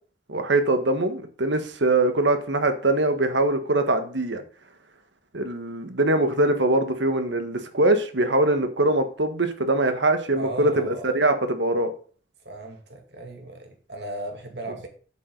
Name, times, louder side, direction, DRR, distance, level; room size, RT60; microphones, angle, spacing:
voice 1, 0.3-4.4 5.3-11.9, right 2 dB, 85° right, 8 dB, 1.5 m, -22 dB
voice 2, 10.3-11.2 12.4-14.9, right 1 dB, 70° right, 3 dB, 2.5 m, -36 dB
8.5 x 7.7 x 4.0 m, 0.42 s
head